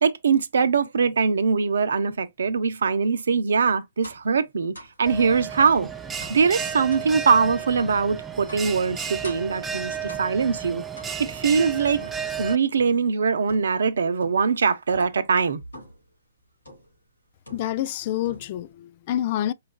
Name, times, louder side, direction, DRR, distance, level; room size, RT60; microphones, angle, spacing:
voice 1, 0.0-4.7 5.0-5.9 6.3-10.8 11.2-12.0 12.4-15.6, right 5 dB, 70° right, 0.6 m, -22 dB
sound 1, 4.0-4.3 4.7-5.0 5.5-5.8 6.2-6.5 6.9-7.1 7.8-8.0 8.5-8.8 9.2-9.6 10.1-10.5 11.0-11.5 12.0-13.1 13.5-13.9 14.2-14.6 14.9-15.2 15.7-16.1 16.7-17.0 17.5-18.0 18.2-18.7, equal, 90° left, 2.7 m, -45 dB
Bell, 5.1-12.6, right 7 dB, 10° right, 0.5 m, -33 dB
voice 2, 17.5-19.5, left 12 dB, 45° left, 0.4 m, -27 dB
4.7 x 2.4 x 2.3 m
figure-of-eight pair, 120°, 0 cm